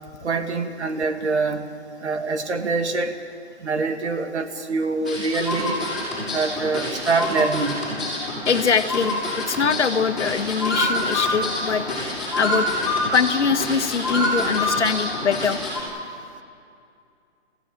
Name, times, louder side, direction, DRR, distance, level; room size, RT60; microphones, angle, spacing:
voice 1, 0.2-1.7 2.0-3.2 3.6-5.8 6.3-7.8, right 4 dB, 75° right, 6 dB, 2.4 m, -24 dB
sound 1, 5.1-15.8, left 1 dB, ahead, 6.7 m, -26 dB
voice 2, 8.5-15.6, left 6 dB, 80° left, 9 dB, 1.5 m, -23 dB
29.5 x 15.5 x 8.8 m, 2.4 s
hypercardioid pair, 155°, 34 cm